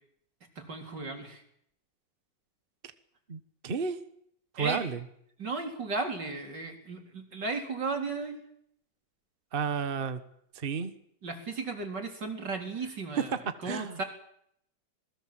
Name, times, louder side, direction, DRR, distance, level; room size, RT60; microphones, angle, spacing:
voice 1, 0.6-1.4 4.6-4.8 5.4-8.4 11.2-14.0, right 3 dB, 80° right, 3 dB, 4.6 m, -35 dB
voice 2, 3.3-4.0 4.5-5.0 9.5-10.2 10.5-10.9 13.6-14.0, right 5 dB, 35° right, 10 dB, 1.4 m, -32 dB
27.0 x 21.0 x 7.7 m, 0.71 s
omnidirectional pair, 1.9 m